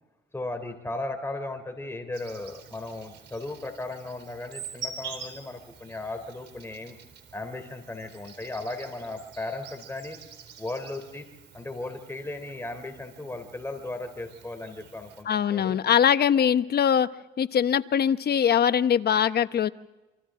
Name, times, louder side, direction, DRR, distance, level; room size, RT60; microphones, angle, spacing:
voice 1, 0.3-6.9 7.3-10.2 10.6-11.3 11.5-15.8, left 2 dB, 10° left, 6 dB, 3.4 m, -36 dB
Insect, 2.1-15.2, right 6 dB, 60° right, 3.9 m, -46 dB
voice 2, 15.3-17.1 17.4-19.7, left 8 dB, 55° left, 12 dB, 1.0 m, -22 dB
29.0 x 24.5 x 3.8 m, 1.1 s
cardioid pair, 90°, 20 cm